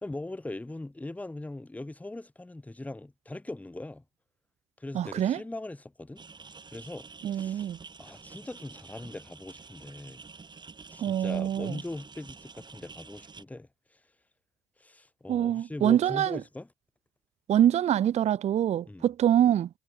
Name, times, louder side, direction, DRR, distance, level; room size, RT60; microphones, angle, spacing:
voice 1, 0.0-4.0 4.8-6.2 6.7-7.7 8.0-10.2 10.9-13.7 14.8-16.7 18.9-19.1, left 2 dB, 10° left, 1.5 m, -40 dB
voice 2, 4.9-5.4 7.2-7.8 11.0-11.8 15.3-16.4 17.5-19.7, right 10 dB, 40° right, 0.4 m, -25 dB
sound 1, 6.2-13.4, right 4 dB, 25° right, 3.9 m, -49 dB
cardioid pair, 110°, 17 cm